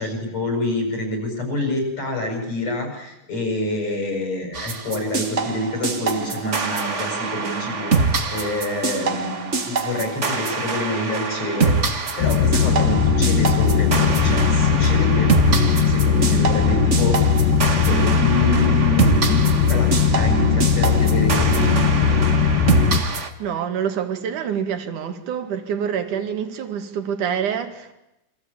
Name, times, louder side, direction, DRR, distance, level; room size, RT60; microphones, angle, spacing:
voice 1, 0.0-22.2, left 1 dB, 50° left, 8.8 m, -27 dB
sound 1, 4.5-23.3, right 4 dB, 35° right, 1.1 m, -25 dB
sound 2, 12.2-23.0, left 6 dB, 80° left, 3.2 m, -18 dB
voice 2, 23.4-27.9, right 8 dB, 70° right, 3.5 m, -26 dB
28.0 x 24.0 x 8.8 m
omnidirectional pair, 3.8 m